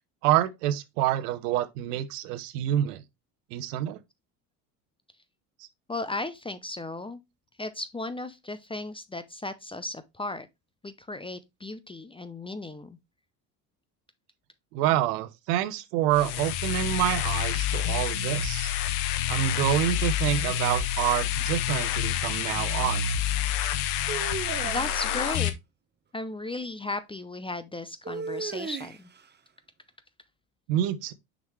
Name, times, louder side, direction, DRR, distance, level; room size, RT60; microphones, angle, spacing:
voice 1, 0.2-3.0 3.5-4.0 14.7-18.7 19.3-23.1 30.7-31.1, right 12 dB, 70° right, 0.9 m, -27 dB
voice 2, 5.9-7.2 7.6-10.5 10.8-13.0 24.6-25.5 26.1-29.1, left 2 dB, 10° left, 0.5 m, -35 dB
sound 1, 16.1-25.5, left 10 dB, 70° left, 1.0 m, -28 dB
sound 2, 24.1-25.5 28.0-29.2, right 5 dB, 20° right, 0.9 m, -36 dB
6.3 x 5.2 x 3.1 m
hypercardioid pair, 70°, 47 cm